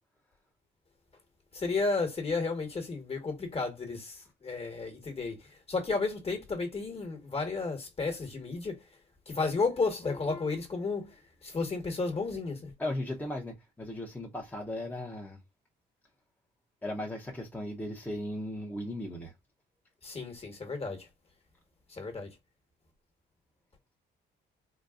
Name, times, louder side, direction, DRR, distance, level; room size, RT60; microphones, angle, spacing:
voice 1, 1.5-5.4 5.7-8.8 9.3-11.1 11.4-12.7 20.0-21.1 21.9-22.3, left 4 dB, 30° left, 1.3 m, -32 dB
voice 2, 12.8-15.4 16.8-19.3, left 1 dB, 10° left, 0.8 m, -37 dB
3.9 x 2.2 x 2.4 m
cardioid pair, 90°, 20 cm